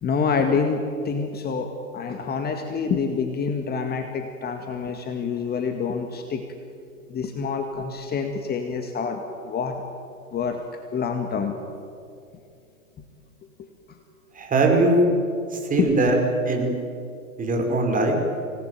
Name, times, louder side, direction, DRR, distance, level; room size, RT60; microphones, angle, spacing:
voice 1, 0.0-6.4 7.1-9.8 10.3-10.6 10.9-11.6 13.6-13.7 15.8-15.9, left 5 dB, 25° left, 5 dB, 2.0 m, -27 dB
voice 2, 14.4-15.0 15.5-16.2 16.5-16.7 17.4-18.1, right 2 dB, 20° right, 2 dB, 5.2 m, -21 dB
25.5 x 19.0 x 9.2 m, 2.5 s
figure-of-eight pair, 105°, 41 cm